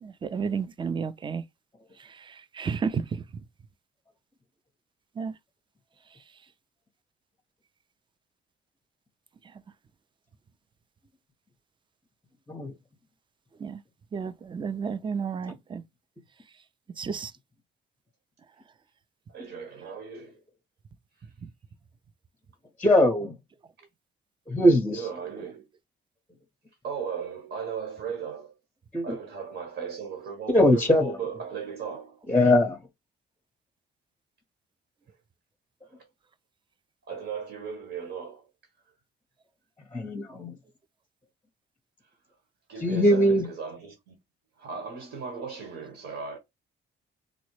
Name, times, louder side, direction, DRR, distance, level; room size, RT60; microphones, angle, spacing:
voice 1, 0.0-1.4 2.1-3.2 5.2-5.3 13.6-13.8 14.1-15.8 17.0-17.3, right 6 dB, 25° right, 0.4 m, -32 dB
voice 2, 19.3-20.4 24.9-25.6 26.8-28.5 29.0-32.2 35.9-36.1 37.1-38.5 42.7-44.2 44.6-46.4, right 6 dB, 75° right, 1.3 m, -37 dB
voice 3, 22.8-23.3 24.5-25.0 28.9-29.0 30.5-31.1 32.3-32.8 39.9-40.5 42.8-43.4, left 1 dB, 10° left, 0.7 m, -21 dB
3.9 x 2.1 x 3.1 m
cardioid pair, 90°, 20 cm